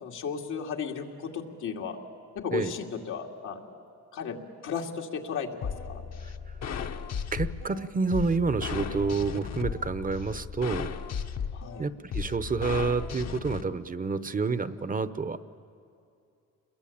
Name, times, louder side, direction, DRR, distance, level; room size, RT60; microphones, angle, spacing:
voice 1, 0.0-2.0 2.4-3.8 4.1-6.0 11.5-11.8, left 6 dB, 80° left, 1 dB, 2.5 m, -35 dB
sound 1, 5.6-13.6, left 7 dB, 60° left, 1.3 m, -35 dB
voice 2, 7.3-11.0 11.8-15.4, right 4 dB, 30° right, 13 dB, 0.9 m, -29 dB
28.0 x 22.0 x 8.7 m, 2.6 s
cardioid pair, 90°, 30 cm